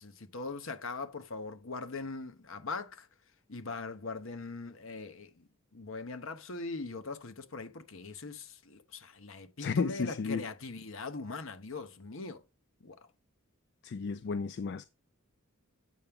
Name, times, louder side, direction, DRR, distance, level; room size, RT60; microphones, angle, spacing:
voice 1, 0.0-3.1 3.5-5.5 5.7-12.4 12.8-13.0, left 3 dB, 70° left, 1.0 m, -41 dB
voice 2, 9.6-10.5 13.8-14.8, left 5 dB, 55° left, 0.4 m, -33 dB
8.3 x 5.8 x 3.6 m
head